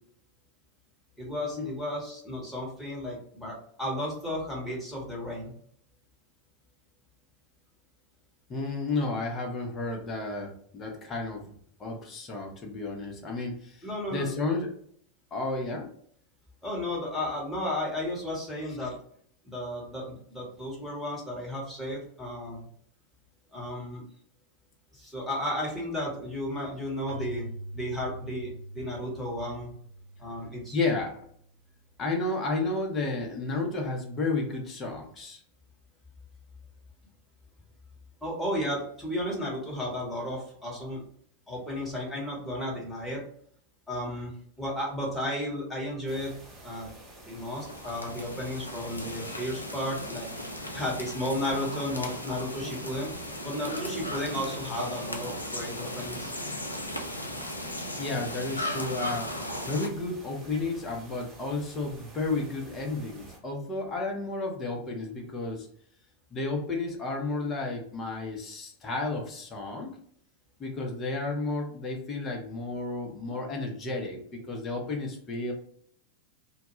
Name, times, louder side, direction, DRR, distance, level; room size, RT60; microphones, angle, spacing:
voice 1, 1.2-5.5 13.8-14.3 16.6-18.9 19.4-22.7 23.5-24.0 24.9-29.7 30.2-30.8 38.2-41.0 41.5-43.2 43.9-46.4 46.6-46.9 47.3-50.3 50.7-53.1 53.4-56.3, left 1 dB, 5° left, -5 dB, 1.1 m, -33 dB
voice 2, 8.5-11.4 11.8-14.8 15.3-15.9 18.8-18.9 30.7-31.2 32.0-35.4 58.0-59.3 59.7-65.7 66.3-69.9 70.6-75.5, left 3 dB, 25° left, 1 dB, 0.7 m, -32 dB
Keyboard (musical), 27.1-31.6, right 1 dB, 65° right, 0.7 m, -43 dB
sound 1, 46.1-63.4, right 2 dB, 15° right, 0.8 m, -49 dB
sound 2, 47.3-59.9, left 1 dB, 85° left, 0.4 m, -37 dB
2.2 x 2.1 x 3.0 m, 0.63 s
figure-of-eight pair, 90°, 0 cm